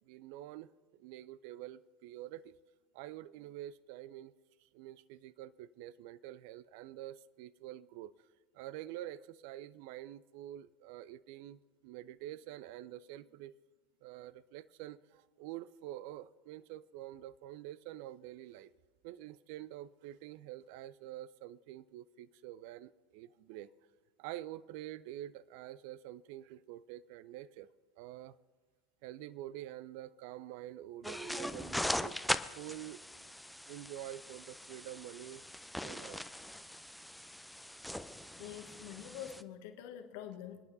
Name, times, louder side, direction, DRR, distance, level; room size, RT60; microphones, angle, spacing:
voice 1, 0.1-0.7 1.0-2.5 2.9-4.3 4.7-8.1 8.5-13.5 14.0-18.7 19.0-23.7 24.2-27.7 28.0-28.4 29.0-32.2 32.6-33.0 33.7-35.4 35.8-36.2, right 13 dB, 55° right, 0.3 m, -47 dB
sound 1, 31.0-39.4, left 1 dB, ahead, 0.5 m, -40 dB
voice 2, 38.4-40.6, left 10 dB, 55° left, 1.2 m, -46 dB
27.0 x 9.8 x 2.7 m
figure-of-eight pair, 75°, 0 cm